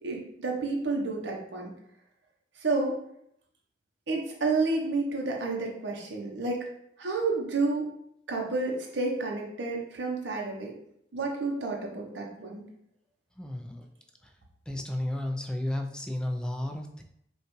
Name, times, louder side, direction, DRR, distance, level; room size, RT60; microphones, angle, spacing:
voice 1, 0.0-1.7 2.6-3.0 4.1-6.7 7.0-7.8 8.3-10.7 11.1-12.6, right 3 dB, 80° right, -1 dB, 0.8 m, -30 dB
voice 2, 13.4-13.9 14.7-17.0, left 1 dB, 5° left, 3 dB, 0.4 m, -33 dB
5.2 x 2.4 x 3.1 m, 0.73 s
head